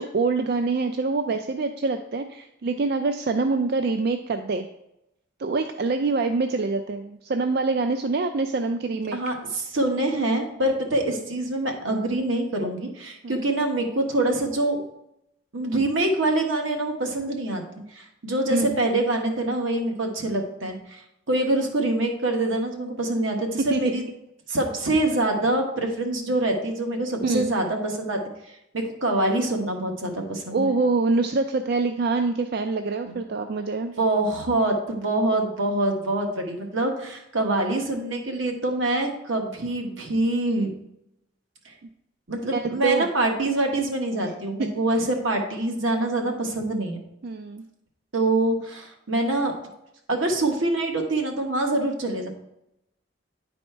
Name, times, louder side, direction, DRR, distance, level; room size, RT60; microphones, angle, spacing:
voice 1, 0.0-4.7 5.4-9.2 13.2-13.4 18.5-18.8 23.7-23.8 27.2-27.5 30.5-33.9 42.5-43.1 44.6-44.7 47.2-47.6, right 3 dB, 50° right, 7 dB, 0.4 m, -25 dB
voice 2, 9.1-14.8 15.5-17.6 17.9-24.0 24.5-28.2 28.7-30.7 33.1-33.2 34.0-40.7 41.6-41.7 42.3-47.0 48.1-49.5 50.1-52.3, right 2 dB, 75° right, 2 dB, 1.3 m, -25 dB
10.0 x 4.2 x 4.4 m, 0.84 s
head